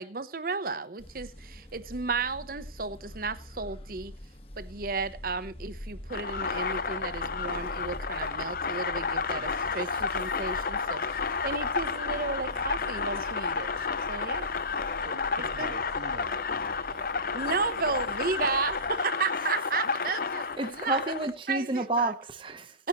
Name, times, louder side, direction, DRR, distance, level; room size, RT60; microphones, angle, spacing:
voice 1, 0.0-4.1 4.6-11.0 11.4-14.5 15.4-15.7 17.3-21.0 21.5-22.1 22.8-22.9, right 4 dB, 50° right, 0.9 m, -33 dB
sound 1, 1.0-19.0, equal, 35° left, 1.2 m, -45 dB
sound 2, 6.1-21.3, left 5 dB, 50° left, 0.7 m, -31 dB
voice 2, 9.3-9.8 12.5-13.0 15.0-18.1 19.8-20.2, right 1 dB, 75° right, 2.3 m, -49 dB
voice 3, 20.6-22.8, right 2 dB, 30° right, 1.0 m, -30 dB
17.5 x 10.5 x 3.0 m
head